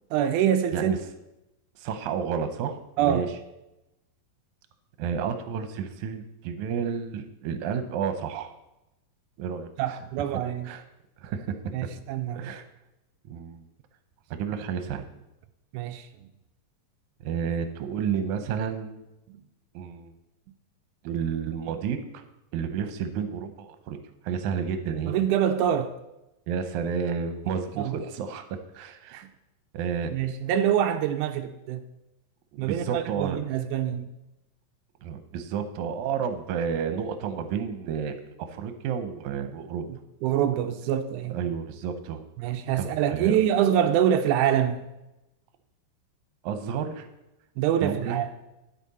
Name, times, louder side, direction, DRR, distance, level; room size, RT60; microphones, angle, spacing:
voice 1, 0.1-0.9 3.0-3.3 9.8-10.7 11.7-12.5 15.7-16.1 25.1-25.9 27.8-27.9 29.1-29.3 30.1-31.8 32.6-34.1 39.9-41.3 42.4-44.9 47.6-48.3, right 10 dB, 90° right, 7 dB, 1.8 m, -25 dB
voice 2, 1.8-3.3 5.0-8.5 9.4-9.7 10.7-10.8 11.2-11.6 12.3-12.7 13.3-13.6 14.3-15.1 17.2-19.1 19.7-20.1 21.0-22.2 22.5-24.0 24.2-25.1 26.5-28.5 28.7-29.2 29.7-30.1 32.5-33.4 35.0-39.9 41.3-42.2 42.8-43.4 46.4-47.1 47.8-48.2, right 7 dB, 75° right, 8 dB, 1.9 m, -31 dB
10.0 x 8.3 x 4.2 m, 0.94 s
omnidirectional pair, 4.1 m